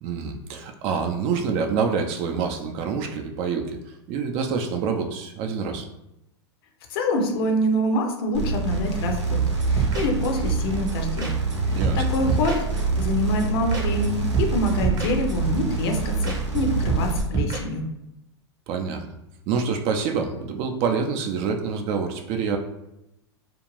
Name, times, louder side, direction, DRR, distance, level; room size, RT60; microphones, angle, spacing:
voice 1, 0.0-3.8 4.1-5.8 11.7-12.1 18.7-19.0 19.5-22.6, right 5 dB, 40° right, 4 dB, 0.5 m, -26 dB
voice 2, 6.9-9.4 9.7-11.3 11.7-17.8, left 1 dB, 60° left, 3 dB, 0.7 m, -26 dB
sound 1, 8.3-17.2, right 4 dB, 85° right, 0.7 m, -26 dB
sound 2, 9.5-10.5 10.9-11.0 11.2-11.6 11.8-13.0 13.4-14.1 14.3-15.6 15.9-16.0 16.2-16.6 16.9-17.6, right 4 dB, 25° right, 0.9 m, -28 dB
2.5 x 2.4 x 3.1 m, 0.87 s
hypercardioid pair, 95°, 15 cm